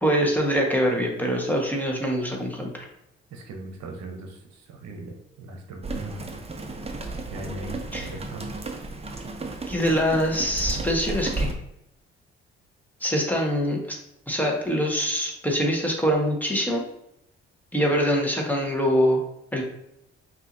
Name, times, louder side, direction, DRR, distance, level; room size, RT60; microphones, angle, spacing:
voice 1, 0.0-2.9 7.9-8.1 9.7-11.5 13.0-14.0 14.3-16.8 17.7-19.2 19.5-19.6, equal, 5° left, -1 dB, 1.3 m, -24 dB
voice 2, 3.3-6.3 7.3-8.6, right 2 dB, 65° right, 3 dB, 0.9 m, -39 dB
sound 1, 5.8-11.5, right 2 dB, 20° right, 0.7 m, -33 dB
5.4 x 2.8 x 2.6 m, 0.83 s
hypercardioid pair, 50°, 30 cm